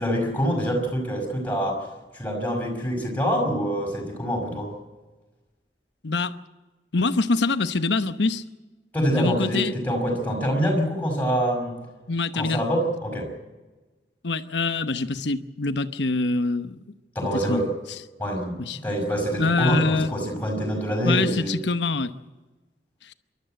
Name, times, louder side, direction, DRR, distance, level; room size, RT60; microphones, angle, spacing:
voice 1, 0.0-1.8 2.1-4.7 8.9-11.7 12.3-13.3 17.2-17.7 18.2-18.6 18.8-21.6, equal, 10° left, 1 dB, 5.4 m, -25 dB
voice 2, 6.0-6.3 6.9-8.4 9.1-9.7 12.1-12.6 14.2-16.8 17.2-17.7 18.6-18.8 19.4-20.1 21.0-22.1 23.0-23.1, left 3 dB, 80° left, 11 dB, 1.0 m, -25 dB
27.0 x 12.5 x 7.7 m, 1.2 s
head